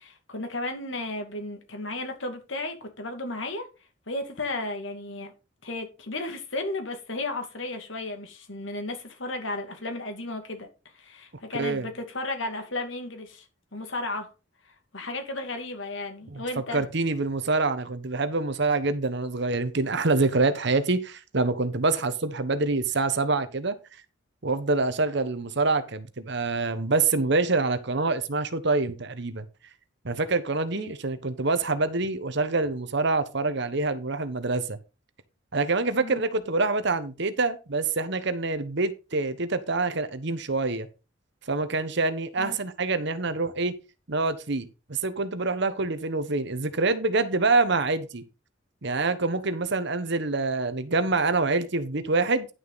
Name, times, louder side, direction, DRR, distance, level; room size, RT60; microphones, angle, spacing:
voice 1, 0.0-3.6 4.1-5.3 5.6-10.7 10.9-13.4 13.7-14.3 14.6-16.8 30.7-30.9 36.0-36.2 42.4-42.6, left 2 dB, 75° left, 2.6 m, -34 dB
voice 2, 16.7-23.7 24.4-29.5 30.0-34.8 35.5-40.9 41.5-43.7 44.1-48.2 48.8-52.5, right 3 dB, 60° right, 1.1 m, -26 dB
11.0 x 6.5 x 4.1 m
head